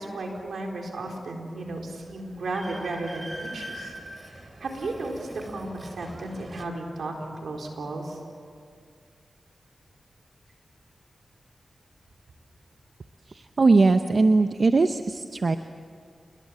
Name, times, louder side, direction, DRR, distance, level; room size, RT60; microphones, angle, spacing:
voice 1, 0.0-3.9 4.3-8.2, right 2 dB, 85° right, 1 dB, 4.2 m, -34 dB
Train, 1.7-1.8 2.1-6.6, right 1 dB, 40° right, 3.0 m, -42 dB
voice 2, 13.3-15.6, right 3 dB, 60° right, 8 dB, 0.8 m, -20 dB
29.0 x 21.0 x 7.6 m, 2.2 s
cardioid pair, 45°, 0 cm